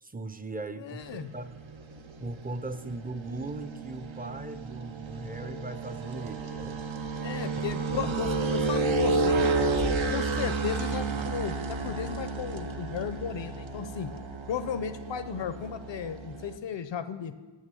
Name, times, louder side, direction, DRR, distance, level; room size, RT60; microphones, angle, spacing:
voice 1, 0.0-1.6 2.2-6.8 7.9-8.2, right 2 dB, 20° right, 11 dB, 0.5 m, -39 dB
voice 2, 0.8-1.3 7.2-9.4 9.8-14.1 14.5-17.3, left 7 dB, 70° left, 11 dB, 0.6 m, -35 dB
sound 1, 1.0-16.6, right 3 dB, 80° right, 0.7 m, -31 dB
8.5 x 6.4 x 7.5 m, 1.3 s
wide cardioid pair, 65°, 46 cm